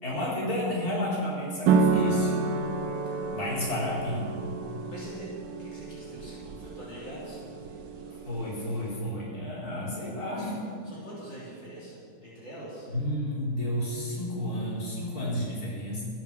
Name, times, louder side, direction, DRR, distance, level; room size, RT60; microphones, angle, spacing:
voice 1, 0.0-2.3 3.1-4.4 8.2-10.6 12.9-16.0, left 1 dB, 45° left, -6 dB, 4.4 m, -31 dB
sound 1, 1.7-9.0, right 4 dB, 90° right, 1.8 m, -30 dB
voice 2, 4.8-8.2 10.3-10.6 10.8-12.9, right 1 dB, 60° left, -8 dB, 4.1 m, -44 dB
15.0 x 10.0 x 7.4 m, 2.4 s
omnidirectional pair, 2.3 m